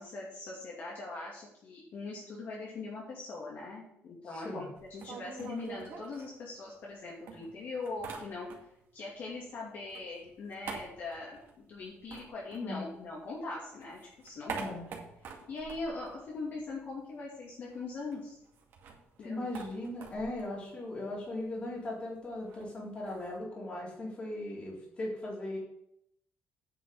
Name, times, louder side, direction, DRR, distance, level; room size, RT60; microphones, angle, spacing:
voice 1, 0.0-8.5 8.9-14.8 15.5-18.4 19.2-19.5, left 3 dB, 50° left, -4 dB, 2.5 m, -41 dB
voice 2, 4.3-4.7 12.6-12.9 14.5-14.9 19.2-25.6, left 1 dB, 25° left, -4 dB, 3.5 m, -38 dB
sound 1, 4.8-6.9 7.3-8.9 9.2-13.3 13.6-16.9 17.2-17.3 17.6-23.4, right 5 dB, 55° right, 2.2 m, -46 dB
9.4 x 5.5 x 6.8 m, 0.75 s
cardioid pair, 170°, 5 cm